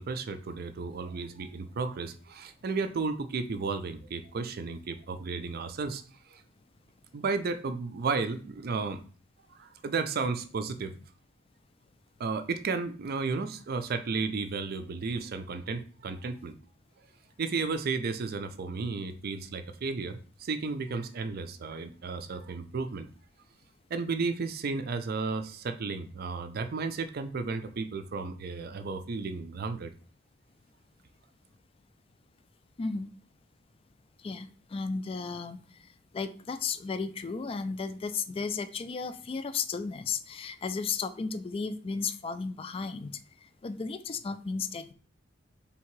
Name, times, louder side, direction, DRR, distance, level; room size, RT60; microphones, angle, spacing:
voice 1, 0.0-6.0 6.3-6.4 7.1-9.0 9.5-10.9 12.2-16.5 17.4-23.1 23.9-29.9, right 4 dB, 50° right, 9 dB, 0.4 m, -33 dB
voice 2, 32.8-33.1 34.2-35.6 36.1-43.1 43.6-44.9, left 5 dB, 30° left, 11 dB, 0.3 m, -34 dB
3.5 x 2.8 x 4.5 m, 0.40 s
head